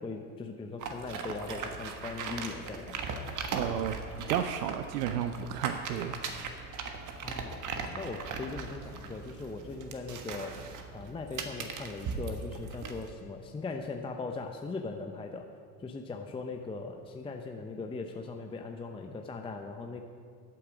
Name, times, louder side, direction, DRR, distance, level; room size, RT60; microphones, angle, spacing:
voice 1, 0.0-3.1 7.2-7.6 7.9-10.6 10.9-15.5 15.8-20.0, left 3 dB, 10° left, 3 dB, 0.6 m, -39 dB
sound 1, 0.8-13.1, right 5 dB, 35° right, 1.5 m, -39 dB
voice 2, 3.5-6.2 6.8-6.9, right 9 dB, 70° right, 9 dB, 0.8 m, -33 dB
14.5 x 8.6 x 5.1 m, 2.2 s
hypercardioid pair, 90°, 50 cm